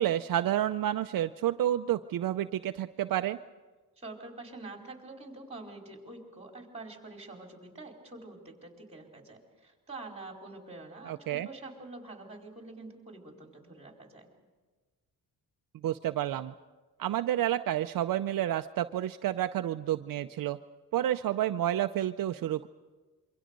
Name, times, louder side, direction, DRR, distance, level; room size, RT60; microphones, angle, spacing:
voice 1, 0.0-3.4 11.1-11.5 15.8-16.5 17.0-20.6 20.9-22.7, right 12 dB, 65° right, 8 dB, 0.6 m, -30 dB
voice 2, 4.0-14.3, right 2 dB, 15° right, 1 dB, 4.3 m, -46 dB
26.5 x 24.5 x 5.3 m, 1.3 s
cardioid pair, 125°, 36 cm